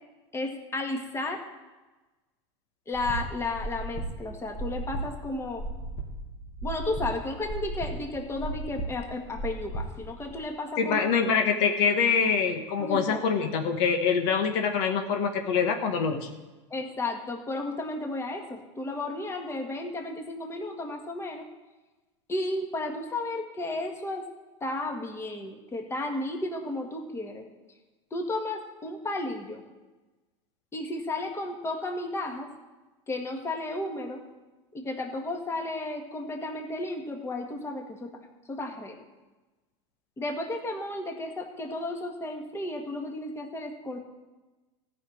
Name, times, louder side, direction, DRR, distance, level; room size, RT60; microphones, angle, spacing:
voice 1, 0.3-1.4 2.9-5.6 6.6-11.1 12.8-13.2 16.7-21.5 22.3-24.2 24.6-27.4 28.1-29.6 30.7-32.5 33.1-34.2 34.7-38.1 38.5-39.0 40.2-44.0, left 2 dB, 15° left, 3 dB, 1.8 m, -33 dB
sound 1, 2.9-10.4, right 1 dB, 45° left, 2.5 m, -36 dB
voice 2, 10.8-16.3, left 6 dB, 60° left, 4 dB, 1.5 m, -25 dB
14.0 x 5.9 x 8.7 m, 1.2 s
hypercardioid pair, 110°, 16 cm